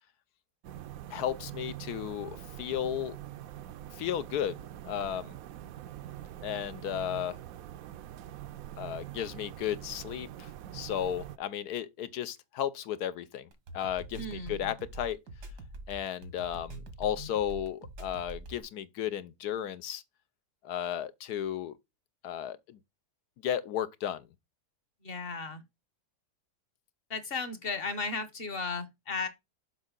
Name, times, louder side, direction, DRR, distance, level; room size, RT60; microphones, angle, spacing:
sound 1, 0.6-11.4, right 12 dB, 70° right, 0.9 m, -44 dB
voice 1, 1.1-3.2 3.9-5.4 6.4-7.4 8.8-13.5 13.7-15.2 15.9-20.0 20.6-21.8 22.2-22.8 23.4-24.3, left 10 dB, 75° left, 1.2 m, -34 dB
sound 2, 13.5-18.6, right 1 dB, 90° right, 2.1 m, -44 dB
voice 2, 14.2-14.6 25.0-25.6 27.1-29.3, left 4 dB, 40° left, 1.1 m, -35 dB
7.1 x 5.3 x 3.8 m
omnidirectional pair, 1.7 m